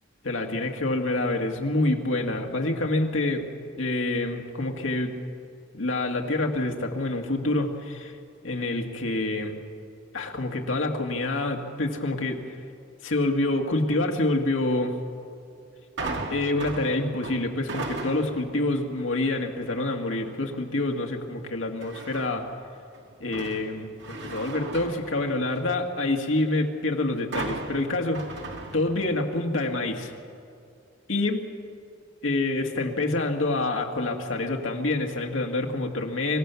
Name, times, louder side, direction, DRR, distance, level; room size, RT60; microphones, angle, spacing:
voice 1, 0.2-3.5 3.8-5.1 5.7-8.1 8.4-9.6 10.1-12.4 13.0-14.9 16.3-22.5 23.2-28.2 28.7-30.1 31.1-31.5 32.2-36.4, left 2 dB, 75° left, 2 dB, 1.9 m, -27 dB
sound 1, 16.0-18.5 19.0-19.4 21.8-22.5 22.9-25.8 27.3-29.3 29.6-29.7, right 2 dB, 60° right, 2.1 m, -36 dB
25.5 x 16.0 x 7.0 m, 2.4 s
head